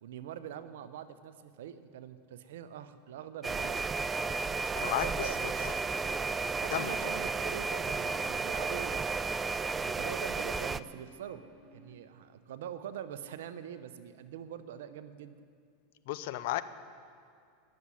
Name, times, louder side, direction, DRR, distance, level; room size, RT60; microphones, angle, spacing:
voice 1, 0.0-3.9 4.8-5.8 6.6-9.5 9.8-11.4 11.7-15.4, right 9 dB, 75° right, 12 dB, 0.7 m, -44 dB
sound 1, 3.4-10.8, right 4 dB, 20° right, 0.3 m, -33 dB
voice 2, 4.7-5.3 5.6-5.7 6.7-6.9 16.1-16.6, left 15 dB, 65° left, 13 dB, 0.5 m, -33 dB
sound 2, 5.9-12.0, right 3 dB, 35° right, 1.6 m, -58 dB
10.5 x 7.3 x 9.7 m, 2.3 s
hypercardioid pair, 110°, 0 cm